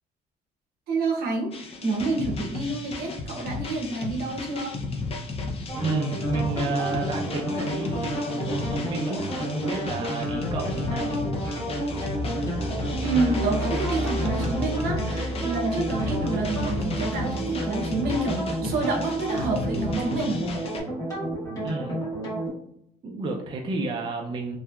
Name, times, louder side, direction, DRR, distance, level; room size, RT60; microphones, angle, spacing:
voice 1, 0.9-4.8 13.0-20.4, right 3 dB, 65° right, 0 dB, 0.8 m, -28 dB
sound 1, 1.5-20.8, left 3 dB, 35° left, 0.5 m, -34 dB
sound 2, 5.7-22.5, right 1 dB, 20° left, 1.4 m, -31 dB
voice 2, 5.8-11.4 21.6-22.0 23.0-24.6, right 3 dB, 30° right, 1 dB, 0.4 m, -31 dB
sound 3, 11.1-19.9, right 1 dB, 85° right, 0.4 m, -34 dB
2.7 x 2.3 x 2.2 m, 0.69 s
cardioid pair, 110°, 17 cm